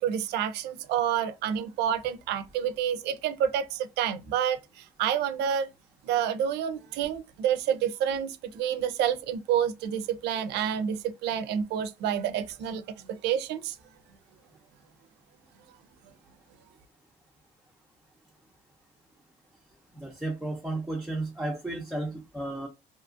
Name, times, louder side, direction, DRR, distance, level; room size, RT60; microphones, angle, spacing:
voice 1, 0.0-5.7 6.0-12.8 13.1-13.8, right 9 dB, 80° right, 0.4 m, -29 dB
voice 2, 19.9-22.7, right 2 dB, 5° right, 0.5 m, -33 dB
2.7 x 2.3 x 2.5 m
cardioid pair, 110°, 17 cm